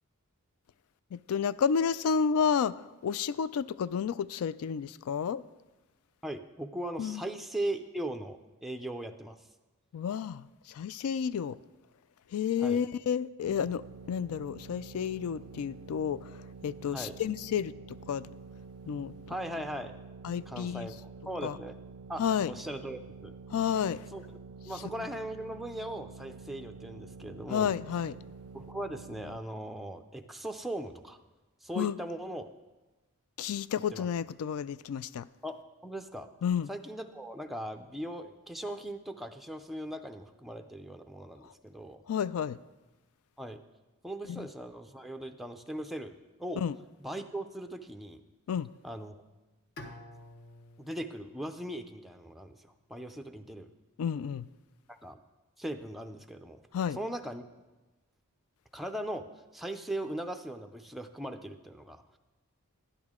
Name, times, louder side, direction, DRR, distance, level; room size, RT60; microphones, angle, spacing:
voice 1, 1.1-5.4 7.0-7.2 9.9-11.6 12.3-13.8 14.1-18.3 18.9-19.1 20.2-20.9 21.4-21.6 22.2-22.5 23.5-24.0 27.5-28.2 31.8-32.0 33.4-35.3 36.4-36.7 41.4-41.5 42.1-42.6 44.3-44.5 46.6-46.8 48.5-48.7 54.0-54.5 56.7-57.0, left 7 dB, 70° left, 0.3 m, -31 dB
voice 2, 6.2-9.5 12.6-12.8 16.9-17.2 19.3-19.9 20.5-21.8 22.1-23.4 24.1-24.2 24.6-27.7 28.5-31.2 31.6-32.5 33.9-34.1 35.4-36.3 36.7-42.0 43.4-43.6 44.0-46.1 46.4-46.6 47.0-48.2 48.8-49.1 50.8-53.7 54.9-55.2 55.6-56.6 56.9-57.4 58.7-59.3 59.5-62.2, right 1 dB, ahead, 0.4 m, -39 dB
sound 1, 13.4-29.4, right 4 dB, 85° right, 0.4 m, -48 dB
Bowed string instrument, 49.8-52.8, left 1 dB, 50° left, 0.8 m, -51 dB
11.5 x 10.5 x 3.6 m
head